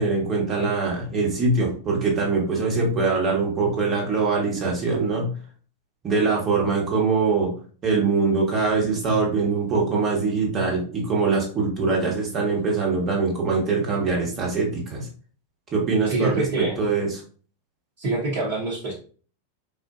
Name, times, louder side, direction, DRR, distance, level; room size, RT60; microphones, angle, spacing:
voice 1, 0.0-5.3 6.0-7.5 7.8-15.1 15.7-17.2, right 4 dB, 30° right, -1 dB, 1.3 m, -23 dB
voice 2, 16.1-16.8 18.0-18.9, right 2 dB, 45° right, -4 dB, 1.0 m, -25 dB
4.3 x 2.5 x 2.4 m, 0.41 s
figure-of-eight pair, 90°, 0 cm